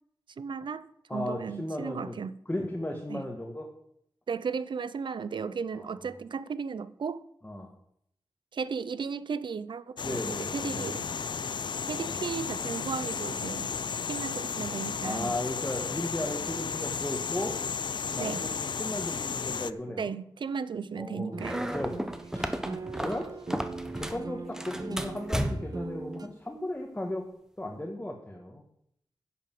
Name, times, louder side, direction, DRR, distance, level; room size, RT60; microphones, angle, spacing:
voice 1, 0.4-2.3 3.1-3.2 4.3-7.2 8.5-11.1 11.9-13.7 14.1-15.3 18.2-18.4 20.0-21.6, right 5 dB, 80° right, 0.6 m, -35 dB
voice 2, 1.1-2.2 2.5-3.7 5.7-5.9 7.4-7.7 10.0-11.0 12.0-12.2 15.0-17.5 18.1-20.1 20.9-21.4 21.7-21.9 22.3-23.4 23.9-27.2 27.6-28.6, left 1 dB, 20° left, 1.8 m, -36 dB
sound 1, 10.0-19.7, left 6 dB, 75° left, 0.5 m, -34 dB
sound 2, 21.3-26.3, right 4 dB, 55° right, 1.0 m, -40 dB
sound 3, 21.4-24.2 24.5-25.8, equal, 5° right, 1.2 m, -33 dB
10.5 x 6.9 x 7.7 m
wide cardioid pair, 70°, 8 cm